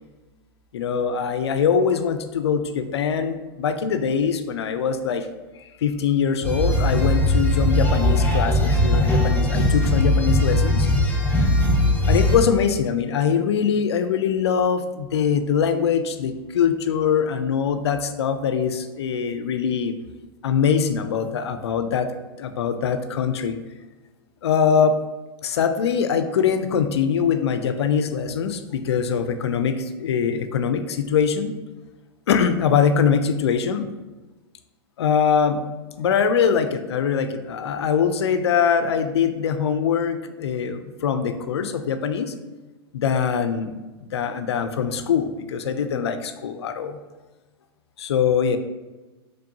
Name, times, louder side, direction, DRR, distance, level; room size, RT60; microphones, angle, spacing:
voice 1, 0.7-5.3 5.8-10.9 12.1-19.9 20.4-22.1 22.4-23.6 24.4-25.0 25.4-31.6 32.3-33.9 35.0-35.6 36.0-42.3 42.9-43.7 44.0-47.0 48.0-48.6, left 7 dB, 80° left, 10 dB, 0.4 m, -22 dB
sound 1, 6.4-12.4, left 1 dB, 15° left, 0.9 m, -19 dB
4.3 x 3.0 x 2.7 m, 1.2 s
hypercardioid pair, 115°, 14 cm